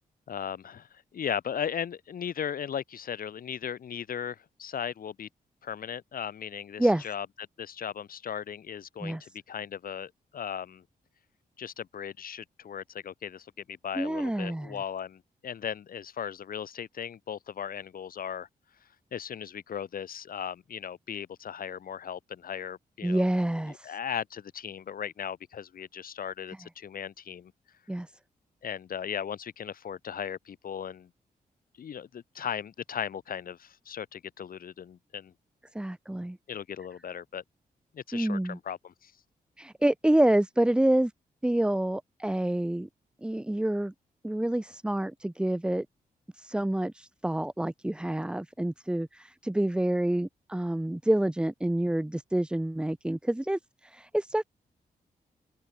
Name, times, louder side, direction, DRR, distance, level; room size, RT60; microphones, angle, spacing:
voice 1, 0.3-0.9 1.1-5.3 5.6-7.3 7.6-10.8 11.6-18.5 19.1-23.3 23.8-27.5 28.6-31.1 31.8-35.3 36.5-37.4 37.9-39.1, left 8 dB, 70° left, 7.0 m, -37 dB
voice 2, 9.0-9.3 13.9-14.8 23.0-24.0 27.9-28.1 35.7-36.4 38.1-38.6 39.6-41.1 41.4-42.9 43.2-43.9 44.2-45.9 46.3-54.4, right 1 dB, 5° right, 0.6 m, -28 dB
wide cardioid pair, 130°, 15 cm